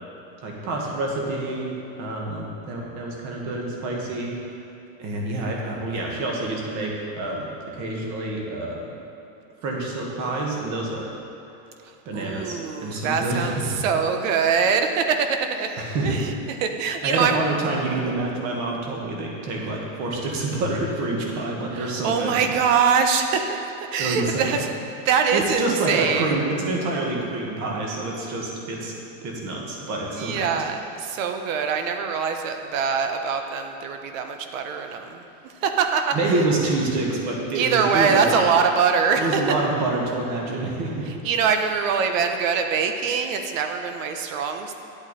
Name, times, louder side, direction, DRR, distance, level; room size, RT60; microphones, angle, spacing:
voice 1, 0.4-4.3 5.0-8.9 9.6-11.1 12.1-13.8 15.8-16.2 17.0-22.4 24.0-24.6 25.3-28.9 29.2-30.6 36.1-38.5 39.2-41.1, right 2 dB, 45° right, -1 dB, 1.9 m, -27 dB
voice 2, 12.1-15.3 15.6-16.3 16.6-17.4 21.7-23.6 23.9-24.7 25.0-26.3 30.2-36.2 37.5-39.4 41.2-44.7, right 6 dB, 75° right, 6 dB, 1.1 m, -23 dB
11.0 x 8.0 x 4.3 m, 2.9 s
supercardioid pair, 160°, 40 cm